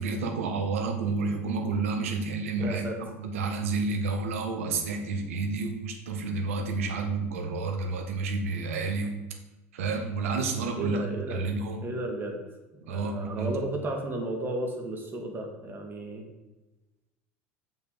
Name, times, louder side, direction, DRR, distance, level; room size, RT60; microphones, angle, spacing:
voice 1, 0.0-9.1 9.7-11.0 11.3-11.8 12.9-13.5, right 4 dB, 70° right, 4 dB, 1.4 m, -30 dB
voice 2, 2.6-3.0 10.8-11.5 11.8-12.4 12.8-16.3, right 1 dB, 25° right, 2 dB, 1.8 m, -33 dB
6.6 x 5.5 x 6.1 m, 1.1 s
hypercardioid pair, 80°, 8 cm